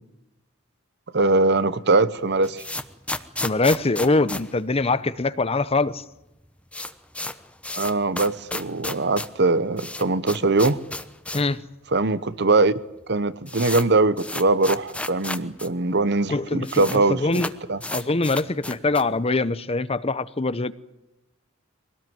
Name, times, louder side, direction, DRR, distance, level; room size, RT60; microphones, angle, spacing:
voice 1, 1.1-2.6 7.8-10.8 11.9-12.7 13.1-17.4 17.7-17.8, right 3 dB, 55° right, 1.0 m, -21 dB
sound 1, 2.2-5.4 5.7-5.8 6.0-6.1 6.4-11.6 11.9-12.0 12.7-12.8 13.0-15.7 16.0-16.1 16.3-17.0 17.3-19.2, left 2 dB, 5° left, 1.0 m, -33 dB
voice 2, 3.4-6.0 11.3-11.6 16.3-17.5 17.9-20.7, left 3 dB, 30° left, 0.8 m, -23 dB
24.0 x 18.0 x 9.4 m
head